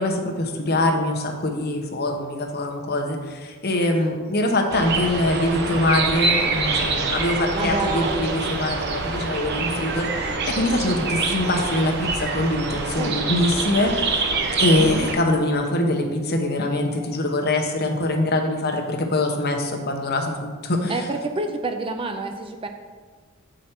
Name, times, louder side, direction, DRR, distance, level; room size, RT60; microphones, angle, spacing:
voice 1, 0.0-14.2 14.6-21.0, left 1 dB, 45° left, 3 dB, 0.9 m, -23 dB
sound 1, 4.7-15.1, right 3 dB, 50° right, 0.8 m, -25 dB
voice 2, 7.5-8.4 13.0-13.2 14.8-15.1 20.9-22.7, right 3 dB, 25° right, 5 dB, 0.4 m, -28 dB
7.7 x 5.1 x 4.4 m, 1.5 s
head